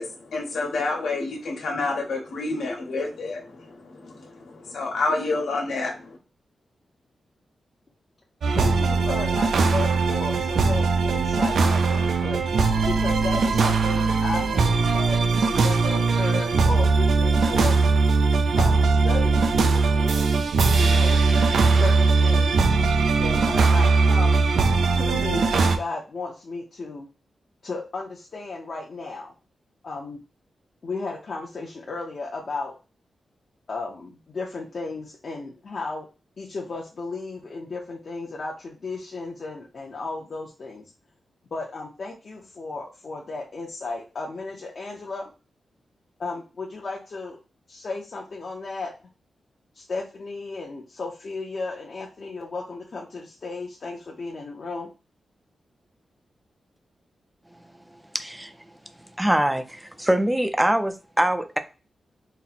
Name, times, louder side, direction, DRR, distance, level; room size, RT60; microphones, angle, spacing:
voice 1, 0.0-6.2, left 3 dB, 85° left, 0 dB, 1.3 m, -29 dB
sound 1, 8.4-25.8, right 4 dB, 80° right, 0.5 m, -20 dB
voice 2, 8.6-12.4 12.9-17.8 18.6-19.4 19.7-20.3 20.8-21.3 21.6-22.8 23.2-24.4 24.9-27.1 27.6-29.3 29.8-30.2 30.8-32.7 33.7-36.1 36.4-40.9 41.5-45.3 46.2-47.4 47.7-48.9 49.7-54.9, left 3 dB, 45° left, -2 dB, 0.7 m, -34 dB
voice 3, 58.1-58.7 59.2-61.6, right 1 dB, 5° right, 8 dB, 0.4 m, -23 dB
4.2 x 2.0 x 4.1 m, 0.31 s
wide cardioid pair, 165°, 0 cm